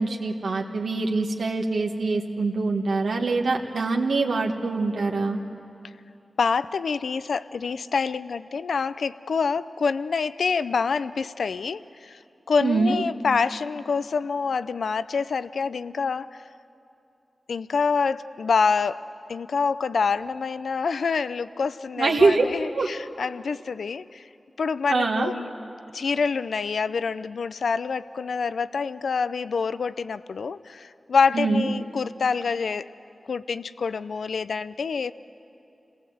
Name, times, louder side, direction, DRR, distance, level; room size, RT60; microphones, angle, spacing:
voice 1, 0.0-5.4 12.6-13.0 22.0-22.4 22.7-22.9 24.9-25.3 31.3-31.7, right 3 dB, 85° right, 0 dB, 1.5 m, -24 dB
voice 2, 6.4-12.2 12.5-16.4 17.5-24.2 24.6-25.5 25.9-32.9 33.3-35.1, left 5 dB, 85° left, 15 dB, 0.4 m, -26 dB
27.0 x 18.0 x 7.9 m, 2.7 s
cardioid pair, 55°, 0 cm